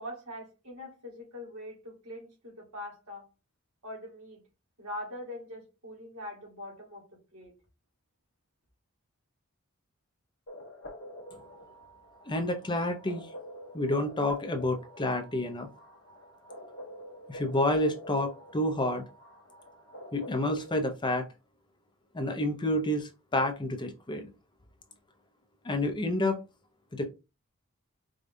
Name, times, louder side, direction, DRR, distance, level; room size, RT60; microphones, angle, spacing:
voice 1, 0.0-3.3 3.8-4.4 4.8-7.5, left 1 dB, 85° right, 2.2 m, -43 dB
sound 1, 10.5-20.8, equal, 60° left, 1.1 m, -47 dB
voice 2, 12.3-13.3 13.7-15.7 17.3-19.0 20.1-21.3 22.1-24.3 25.6-26.4 26.9-27.1, left 1 dB, 20° left, 0.6 m, -29 dB
4.9 x 2.3 x 2.6 m
head